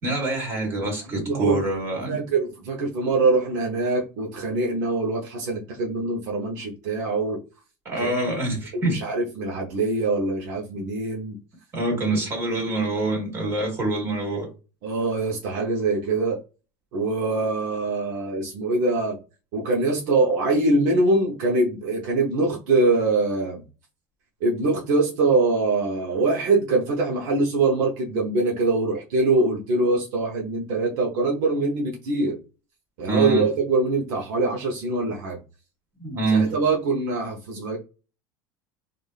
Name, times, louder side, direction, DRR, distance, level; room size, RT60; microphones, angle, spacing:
voice 1, 0.0-2.2 7.8-9.0 11.7-14.5 33.1-33.5 36.0-36.5, right 2 dB, 25° right, 1.3 m, -25 dB
voice 2, 1.0-1.6 2.1-7.4 8.0-8.2 8.7-11.4 14.8-16.4 16.9-19.2 19.5-23.6 24.4-32.4 33.0-35.4 36.3-37.8, right 3 dB, 80° right, 0.7 m, -23 dB
3.3 x 2.5 x 2.3 m
cardioid pair, 160°, 10 cm